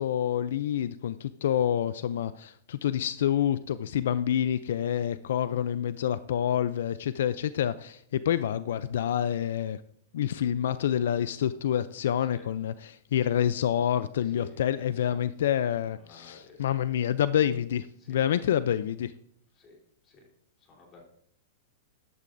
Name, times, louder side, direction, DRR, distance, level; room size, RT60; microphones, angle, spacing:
voice 1, 0.0-9.8 10.1-19.1, left 10 dB, 75° left, 14 dB, 0.4 m, -28 dB
voice 2, 14.2-15.2 15.9-16.6 18.0-18.5 19.5-20.3 20.6-21.0, left 4 dB, 25° left, -1 dB, 3.5 m, -52 dB
14.5 x 11.5 x 2.6 m, 0.66 s
supercardioid pair, 160°, 0 cm